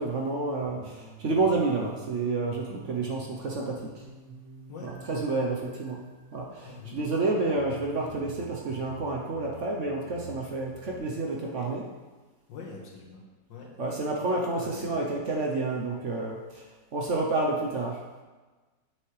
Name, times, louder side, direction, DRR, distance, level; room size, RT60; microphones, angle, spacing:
voice 1, 0.0-4.0 4.8-6.0 6.3-11.9 13.8-16.7 16.9-18.0, right 3 dB, 55° right, -1 dB, 0.9 m, -29 dB
sound 1, 0.6-11.0, right 2 dB, 85° right, 1.8 m, -49 dB
voice 2, 6.6-7.0 12.5-13.2 13.5-13.7 14.7-15.0, left 5 dB, 75° left, -1 dB, 2.0 m, -43 dB
7.9 x 6.4 x 3.2 m, 1.3 s
omnidirectional pair, 2.0 m